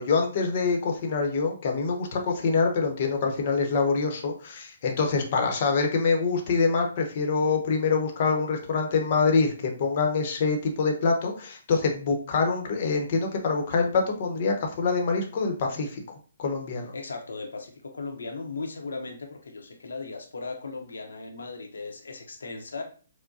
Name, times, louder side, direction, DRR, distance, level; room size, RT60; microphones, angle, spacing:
voice 1, 0.0-16.0 16.4-16.9, left 4 dB, 45° left, 3 dB, 0.9 m, -25 dB
voice 2, 5.2-5.5 16.9-22.8, left 3 dB, 80° left, 3 dB, 0.8 m, -37 dB
4.6 x 2.1 x 2.6 m, 0.40 s
hypercardioid pair, 145°, 0 cm